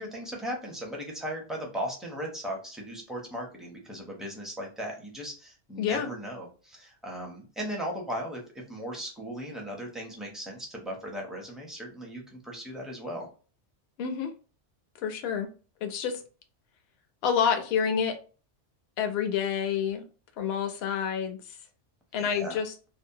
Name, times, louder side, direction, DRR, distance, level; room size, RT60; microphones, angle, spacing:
voice 1, 0.0-8.4 8.7-13.3 22.2-22.6, equal, ahead, -1 dB, 0.4 m, -37 dB
voice 2, 5.8-6.1 14.0-14.3 15.0-15.5 15.8-16.2 17.2-18.2 19.0-20.0 20.4-21.6 22.1-22.7, left 7 dB, 65° left, 6 dB, 0.7 m, -28 dB
2.7 x 2.0 x 2.7 m, 0.37 s
omnidirectional pair, 1.2 m